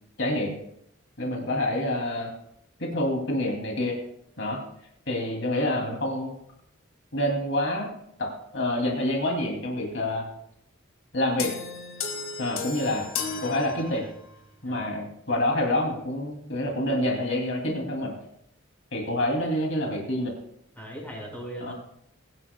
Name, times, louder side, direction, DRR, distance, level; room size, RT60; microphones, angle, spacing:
voice 1, 0.2-0.5 1.2-2.3 2.8-4.0 4.4-4.6 5.1-6.3 7.1-7.9 8.2-10.3 11.1-11.5 12.4-13.1 13.4-14.0 14.6-18.1 18.9-20.3 21.6-21.7, left 1 dB, 60° left, 0 dB, 2.6 m, -27 dB
sound 1, 11.4-14.4, left 5 dB, 75° left, 1.7 m, -34 dB
voice 2, 14.6-15.0 20.7-21.7, right 1 dB, 10° left, -2 dB, 4.7 m, -39 dB
21.5 x 11.5 x 2.2 m, 0.74 s
head